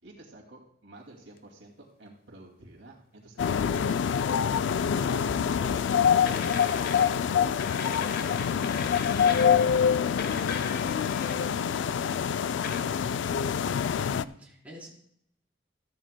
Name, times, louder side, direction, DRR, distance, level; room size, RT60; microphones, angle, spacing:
voice 1, 0.0-6.7 7.0-13.0, right 2 dB, 80° right, -1 dB, 2.4 m, -50 dB
sound 1, 3.4-14.2, left 7 dB, 80° left, 0.4 m, -26 dB
sound 2, 6.3-7.3 7.6-9.8 10.2-11.7 12.6-12.8, left 5 dB, 55° left, 0.9 m, -37 dB
voice 2, 14.0-14.9, equal, 10° right, -5 dB, 3.8 m, -47 dB
13.5 x 13.0 x 2.2 m, 0.71 s
head